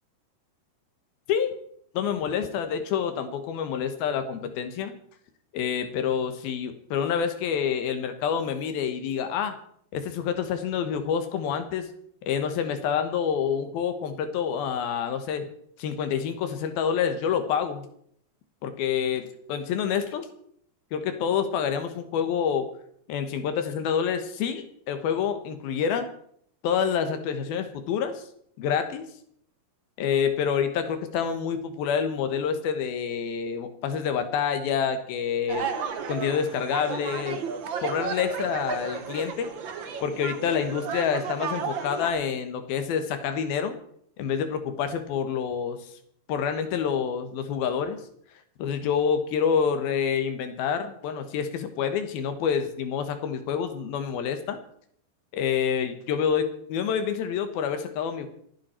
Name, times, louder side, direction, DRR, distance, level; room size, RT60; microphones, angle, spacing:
voice 1, 1.9-4.9 5.5-9.6 9.9-11.9 12.2-15.5 15.8-17.9 18.6-20.3 20.9-22.7 23.1-26.1 26.6-28.2 28.6-29.0 30.0-35.7 36.1-37.4 37.8-39.5 40.0-43.7 44.2-45.9 46.3-48.0 48.6-54.6 55.3-58.3, left 7 dB, 80° left, 8 dB, 3.2 m, -27 dB
sound 1, 35.5-42.1, right 6 dB, 80° right, 1.0 m, -33 dB
27.0 x 9.5 x 4.4 m, 0.66 s
omnidirectional pair, 4.2 m